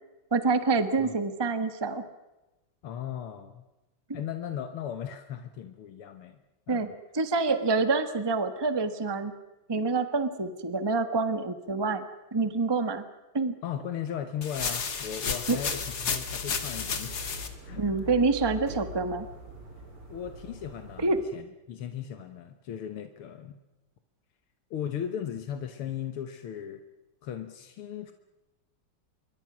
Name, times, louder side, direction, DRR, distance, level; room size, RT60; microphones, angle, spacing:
voice 1, 0.3-2.0 6.7-6.9 7.1-9.3 9.7-12.0 12.3-13.0 13.3-13.5 15.5-15.6 17.8-19.3 21.0-21.2, right 3 dB, 15° right, 10 dB, 1.1 m, -26 dB
voice 2, 2.8-3.7 4.1-6.4 6.7-6.9 13.6-17.3 17.6-17.8 20.1-23.5 24.7-26.8 27.2-28.1, left 9 dB, 80° left, 8 dB, 2.1 m, -37 dB
sound 1, 14.4-17.5, left 5 dB, 50° left, 2.3 m, -32 dB
sound 2, 15.4-21.2, equal, 80° right, 5.7 m, -43 dB
27.0 x 23.0 x 6.2 m, 1.0 s
omnidirectional pair, 2.4 m